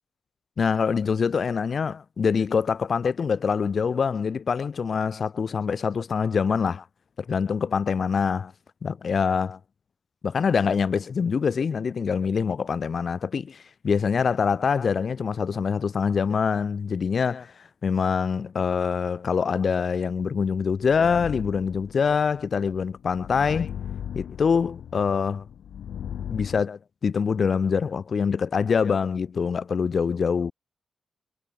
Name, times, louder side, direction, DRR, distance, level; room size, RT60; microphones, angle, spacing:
voice 1, 0.6-6.8 7.2-8.5 8.8-9.6 10.2-17.5 17.8-23.8 24.1-25.5 26.3-30.5, left 6 dB, 50° left, 1.0 m, -25 dB
sound 1, 20.2-26.6, left 9 dB, 80° left, 3.5 m, -38 dB
cardioid pair, 90°, 0 cm